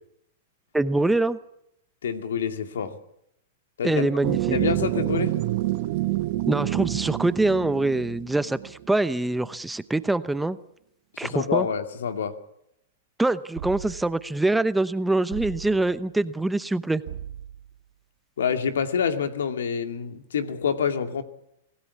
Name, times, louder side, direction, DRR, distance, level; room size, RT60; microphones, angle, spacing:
voice 1, 0.7-1.4 3.8-4.6 6.5-10.6 11.2-11.7 13.2-17.0, right 2 dB, 5° right, 14 dB, 0.8 m, -24 dB
voice 2, 2.0-2.9 3.8-4.1 4.5-5.4 11.1-12.3 18.4-21.2, left 7 dB, 85° left, 8 dB, 2.4 m, -27 dB
sound 1, 4.2-8.9, right 17 dB, 55° right, 1.3 m, -27 dB
sound 2, 13.5-14.3 15.3-16.1 17.0-17.8, right 10 dB, 70° right, 1.4 m, -38 dB
25.0 x 17.0 x 8.4 m, 0.77 s
hypercardioid pair, 125°, 0 cm